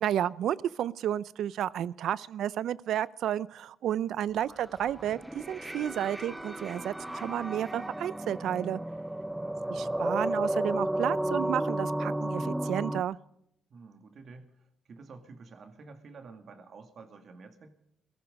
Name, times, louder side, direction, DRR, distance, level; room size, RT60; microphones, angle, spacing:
voice 1, 0.0-8.8 9.7-13.2, right 11 dB, 75° right, 20 dB, 0.5 m, -31 dB
sound 1, 4.5-13.0, right 1 dB, 10° right, 0.7 m, -33 dB
voice 2, 9.3-9.9 13.7-17.7, right 4 dB, 55° right, 6 dB, 2.3 m, -50 dB
17.0 x 15.0 x 5.3 m, 0.75 s
cardioid pair, 90°, 0 cm